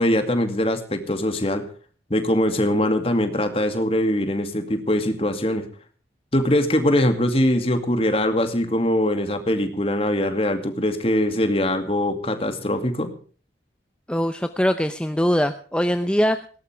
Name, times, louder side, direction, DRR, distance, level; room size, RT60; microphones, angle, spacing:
voice 1, 0.0-1.6 2.1-5.7 6.3-13.1, left 1 dB, 35° left, 7 dB, 2.3 m, -22 dB
voice 2, 14.1-16.5, equal, 5° left, 8 dB, 0.7 m, -22 dB
19.0 x 18.0 x 3.5 m, 0.41 s
head